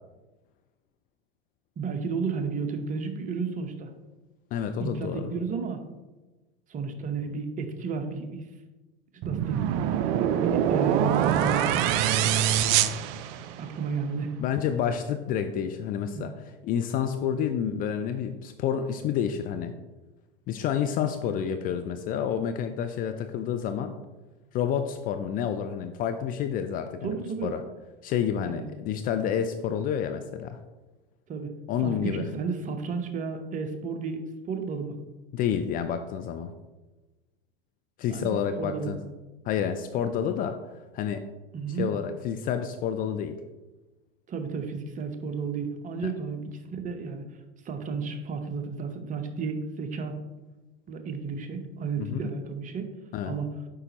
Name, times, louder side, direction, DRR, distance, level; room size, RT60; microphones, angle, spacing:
voice 1, 1.8-3.9 4.8-5.8 6.7-8.5 9.2-9.6 10.4-11.7 13.6-14.3 16.1-16.3 27.0-27.6 28.4-28.7 31.3-31.5 31.8-35.0 38.1-39.1 41.5-41.9 44.3-47.2 47.6-50.2 50.9-52.8 53.2-53.5, right 5 dB, 25° right, 6 dB, 0.8 m, -32 dB
voice 2, 4.5-5.3 14.4-16.3 16.6-19.7 20.5-23.9 24.5-27.6 28.0-30.6 31.7-32.3 35.3-36.5 38.0-39.0 39.5-40.6 40.9-41.2 41.8-43.4 46.0-46.1 52.0-52.3 53.1-53.3, left 8 dB, 30° left, 8 dB, 0.4 m, -29 dB
sound 1, 9.2-13.8, right 10 dB, 45° right, 0.4 m, -24 dB
8.4 x 5.0 x 2.9 m, 1.1 s
hypercardioid pair, 95°, 29 cm